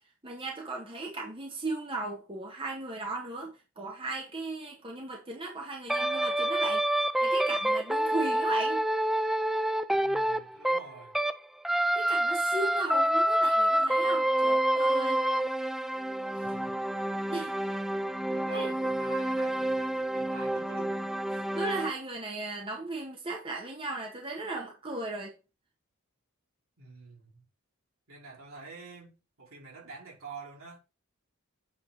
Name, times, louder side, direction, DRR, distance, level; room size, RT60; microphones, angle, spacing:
voice 1, 0.2-8.8 12.1-15.3 16.4-16.5 17.3-17.6 18.5-18.7 21.5-25.3, right 2 dB, 25° right, 1.8 m, -37 dB
sound 1, 5.9-11.4 11.6-21.9, right 1 dB, ahead, 0.4 m, -28 dB
voice 2, 9.9-11.2 16.4-17.7 18.2-21.1 26.8-27.4 28.1-30.8, right 4 dB, 80° right, 5.0 m, -47 dB
8.5 x 4.3 x 4.3 m
head